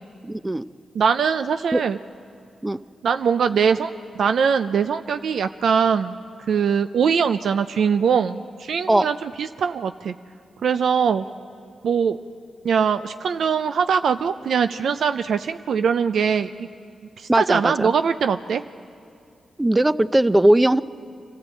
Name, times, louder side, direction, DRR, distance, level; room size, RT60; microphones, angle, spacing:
voice 1, 0.2-0.7 1.7-1.8 2.6-2.8 8.9-9.1 17.3-17.9 19.6-20.8, right 1 dB, 20° right, 14 dB, 0.6 m, -19 dB
voice 2, 0.9-2.0 3.0-6.2 6.5-10.1 10.6-11.2 11.8-12.2 12.6-16.7 17.2-18.6, right 6 dB, 80° right, 10 dB, 0.5 m, -22 dB
26.0 x 14.0 x 8.3 m, 2.5 s
cardioid pair, 55°, 0 cm